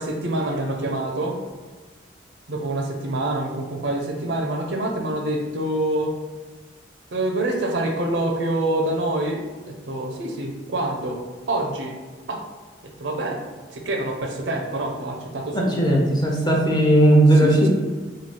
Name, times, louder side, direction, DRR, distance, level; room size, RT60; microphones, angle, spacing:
voice 1, 0.0-1.4 2.5-6.1 7.1-11.2 11.5-11.9 12.3-12.4 12.8-13.4 13.7-16.0 17.4-17.7, right 1 dB, 75° right, 2 dB, 0.6 m, -26 dB
voice 2, 15.5-17.7, right 1 dB, 25° left, -1 dB, 0.6 m, -17 dB
3.1 x 2.4 x 4.2 m, 1.4 s
head